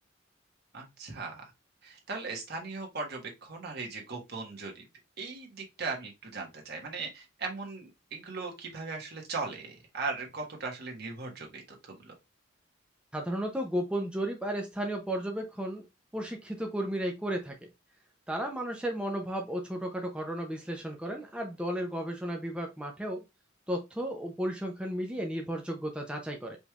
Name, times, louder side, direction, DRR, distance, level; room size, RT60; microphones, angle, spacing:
voice 1, 0.7-1.4 1.8-4.9 5.2-12.1, right 4 dB, 55° right, 1 dB, 1.3 m, -38 dB
voice 2, 13.1-15.8 16.1-17.6 18.3-23.2 23.7-26.6, right 1 dB, 5° right, 1 dB, 0.6 m, -34 dB
5.1 x 3.2 x 2.3 m, 0.22 s
head